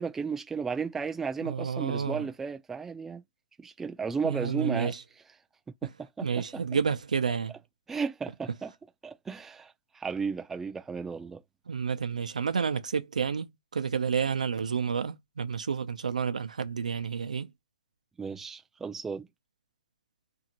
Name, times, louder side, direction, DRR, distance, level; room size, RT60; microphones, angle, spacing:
voice 1, 0.0-3.2 3.6-4.9 5.8-5.9 6.2-6.3 6.5-6.6 7.9-8.7 9.0-11.4 18.2-19.3, right 5 dB, 10° right, 0.5 m, -34 dB
voice 2, 1.4-2.3 4.2-5.0 6.2-7.6 11.7-17.5, right 6 dB, 80° right, 0.6 m, -30 dB
2.7 x 2.5 x 2.9 m
hypercardioid pair, 145°, 4 cm